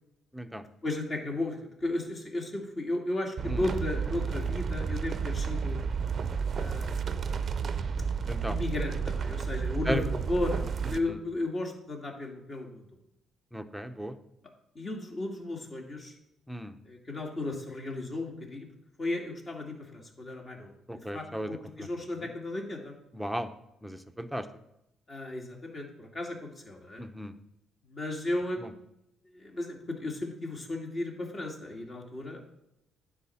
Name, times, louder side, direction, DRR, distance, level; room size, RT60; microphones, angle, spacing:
voice 1, 0.8-5.8 6.5-7.2 8.4-12.9 14.7-16.1 16.8-18.7 19.0-20.7 21.1-22.9 25.1-27.0 27.9-28.7 29.3-32.5, left 2 dB, 40° left, 0 dB, 2.3 m, -35 dB
sound 1, 3.4-11.0, right 6 dB, 45° right, 0.6 m, -31 dB
voice 2, 8.3-8.6 9.9-10.0 13.5-14.2 16.5-16.7 20.9-21.6 23.1-23.5 23.8-24.4 27.0-27.3, equal, ahead, 8 dB, 0.8 m, -35 dB
9.8 x 4.2 x 7.1 m, 0.84 s
cardioid pair, 85°, 0 cm